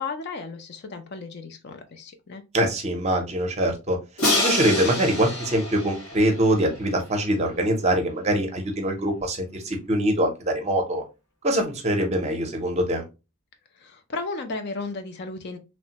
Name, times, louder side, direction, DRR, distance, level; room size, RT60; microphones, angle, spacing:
voice 1, 0.0-2.4 13.7-15.6, left 3 dB, 50° left, 0.4 m, -34 dB
voice 2, 2.5-4.0 4.3-11.0 11.4-13.0, right 1 dB, 30° right, 0.6 m, -23 dB
Crash cymbal, 4.2-7.1, left 2 dB, 80° left, 1.4 m, -27 dB
3.1 x 2.1 x 2.7 m
head